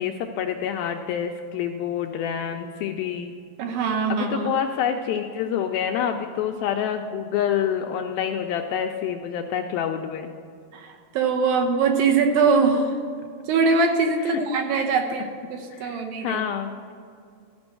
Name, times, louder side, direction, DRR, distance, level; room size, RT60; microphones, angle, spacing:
voice 1, 0.0-3.3 4.1-10.3 14.3-14.4 15.7-16.7, left 8 dB, 85° left, 4 dB, 2.2 m, -27 dB
voice 2, 3.6-4.5 10.7-13.0 13.5-16.4, right 4 dB, 75° right, 3 dB, 2.4 m, -22 dB
14.0 x 5.3 x 7.6 m, 2.3 s
omnidirectional pair, 4.6 m